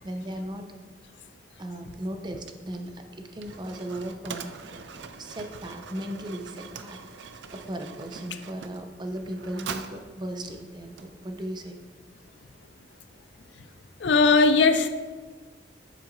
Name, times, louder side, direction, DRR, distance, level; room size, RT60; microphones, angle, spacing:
voice 1, 0.0-0.7 1.6-4.5 4.9-11.8, right 1 dB, 25° right, 5 dB, 0.6 m, -37 dB
Mechanisms, 1.9-11.6, right 6 dB, 85° right, 0.4 m, -44 dB
voice 2, 14.0-14.9, left 4 dB, 85° left, 9 dB, 0.5 m, -19 dB
7.8 x 7.4 x 2.7 m, 1.4 s
head